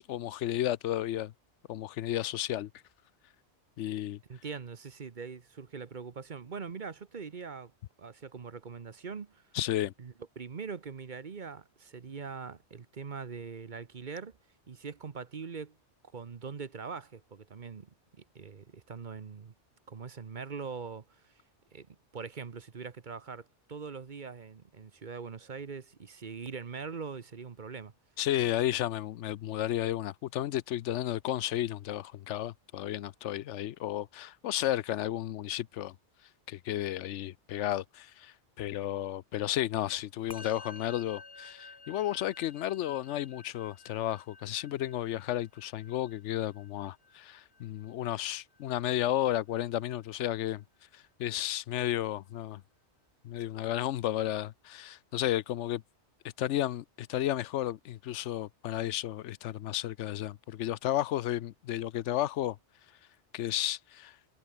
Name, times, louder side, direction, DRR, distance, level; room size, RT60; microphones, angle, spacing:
voice 1, 0.0-1.3 1.7-2.7 3.8-4.2 9.5-9.9 28.2-35.9 36.5-50.6 50.9-52.6 53.2-55.8 56.4-62.6 63.3-64.1, left 13 dB, 80° left, 0.9 m, -33 dB
voice 2, 4.3-7.7 8.0-9.4 10.0-14.4 14.7-15.8 16.1-19.5 19.9-21.4 21.7-27.9, right 5 dB, 45° right, 1.1 m, -42 dB
Musical instrument, 40.3-49.8, left 4 dB, 25° left, 0.8 m, -53 dB
omnidirectional pair, 1.2 m